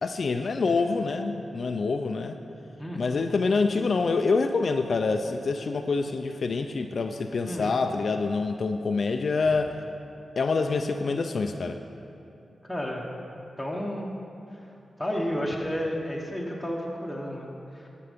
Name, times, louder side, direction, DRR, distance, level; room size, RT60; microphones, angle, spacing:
voice 1, 0.0-2.4 3.0-9.7 10.4-11.8, left 4 dB, 60° left, 6 dB, 0.3 m, -26 dB
voice 2, 2.8-3.2 7.5-7.7 12.6-13.1 13.6-14.1 15.0-17.9, equal, 5° left, -2 dB, 1.0 m, -32 dB
12.5 x 4.5 x 5.2 m, 2.7 s
cardioid pair, 85°, 0 cm